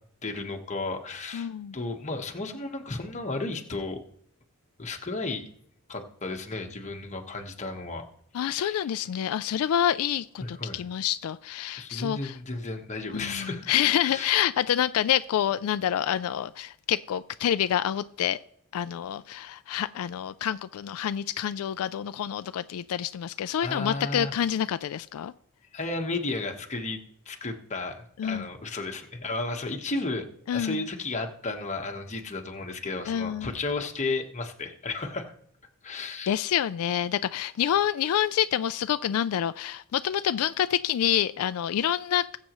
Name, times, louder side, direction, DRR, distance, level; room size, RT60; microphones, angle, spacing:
voice 1, 0.2-4.0 4.8-5.4 5.9-8.1 8.3-8.9 10.4-10.8 11.8-13.7 14.0-14.3 23.6-24.3 25.7-27.0 27.3-30.3 30.5-35.3 35.8-36.3, left 3 dB, 30° left, 3 dB, 1.1 m, -33 dB
voice 2, 1.3-1.7 8.3-12.4 13.1-18.4 18.7-25.3 28.2-28.5 30.5-30.9 33.1-33.5 36.3-42.4, left 10 dB, 80° left, 12 dB, 0.3 m, -27 dB
20.0 x 7.6 x 3.0 m, 0.67 s
head